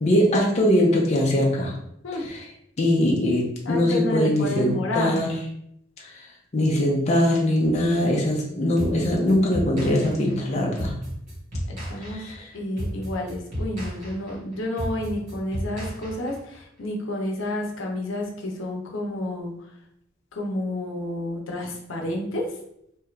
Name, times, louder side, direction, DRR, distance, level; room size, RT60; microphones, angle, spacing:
voice 1, 0.0-1.7 2.2-2.5 2.8-5.3 6.0-6.2 6.5-11.0 12.0-12.5, left 1 dB, 35° left, -2 dB, 0.5 m, -22 dB
voice 2, 3.7-5.2 11.7-12.2 12.5-19.5 20.3-22.5, left 1 dB, 85° left, 0 dB, 0.7 m, -30 dB
sound 1, 8.8-16.6, equal, 45° right, 1.2 m, -33 dB
2.7 x 2.4 x 3.2 m, 0.74 s
head